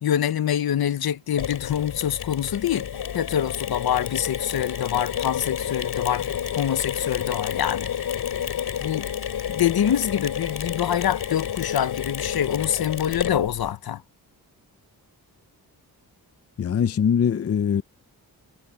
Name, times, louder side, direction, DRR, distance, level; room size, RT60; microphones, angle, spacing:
voice 1, 0.0-2.9 3.1-7.9 8.8-9.1 9.5-14.0, left 10 dB, 70° left, 0.9 m, -25 dB
Mechanisms, 1.4-13.7, left 9 dB, 90° left, 2.9 m, -30 dB
voice 2, 16.6-17.8, left 7 dB, 40° left, 0.5 m, -22 dB
wide cardioid pair, 145°, 38 cm